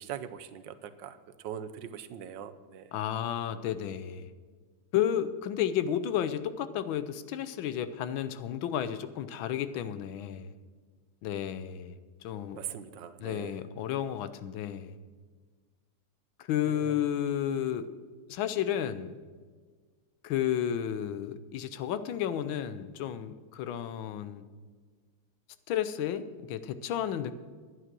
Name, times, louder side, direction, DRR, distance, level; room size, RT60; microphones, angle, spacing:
voice 1, 0.0-2.9 12.5-13.6 16.7-17.0, right 9 dB, 70° right, 11 dB, 1.3 m, -42 dB
voice 2, 2.9-4.3 4.9-10.5 11.2-11.9 12.2-12.6 13.2-14.9 16.4-17.9 18.3-19.2 20.2-24.4 25.7-27.3, left 10 dB, 90° left, 13 dB, 1.5 m, -32 dB
11.5 x 9.7 x 6.0 m, 1.5 s
omnidirectional pair, 2.1 m